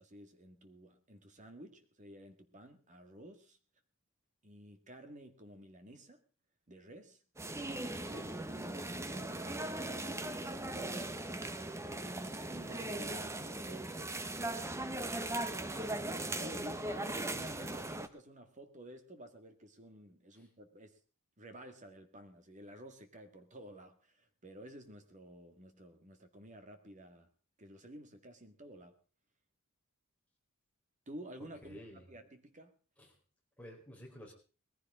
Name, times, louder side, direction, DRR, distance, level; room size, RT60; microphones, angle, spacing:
voice 1, 0.0-3.6 4.4-6.2 6.7-7.2 8.0-11.2 11.9-14.8 15.7-21.0 21.4-27.3 27.6-29.0 31.1-32.7, right 1 dB, 35° right, 7 dB, 2.0 m, -52 dB
sound 1, 7.4-18.1, right 2 dB, 15° right, 0.9 m, -39 dB
voice 2, 31.6-32.1 33.0-33.1 33.6-34.3, equal, 5° left, -2 dB, 4.1 m, -51 dB
20.0 x 15.0 x 3.7 m, 0.37 s
head